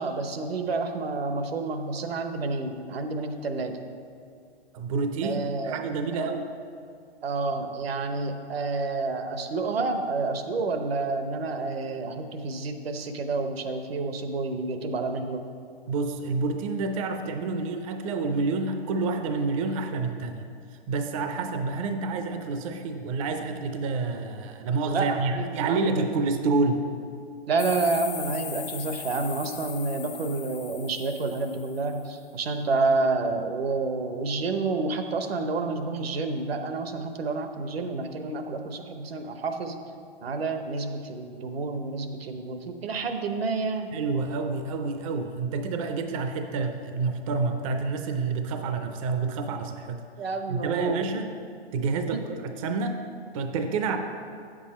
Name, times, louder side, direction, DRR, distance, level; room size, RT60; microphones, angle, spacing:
voice 1, 0.0-3.8 5.2-5.8 6.1-6.3 7.2-15.5 24.9-26.0 27.5-39.8 40.2-44.0 50.2-51.1, right 3 dB, 75° right, 7 dB, 1.0 m, -29 dB
voice 2, 4.7-6.5 15.9-20.5 20.9-26.8 43.9-50.0 50.5-51.3 51.7-53.0 53.3-54.0, right 3 dB, 35° right, 6 dB, 0.5 m, -28 dB
sound 1, 27.6-32.0, left 8 dB, 15° left, 0.4 m, -39 dB
8.4 x 7.4 x 4.2 m, 2.4 s
hypercardioid pair, 140°, 31 cm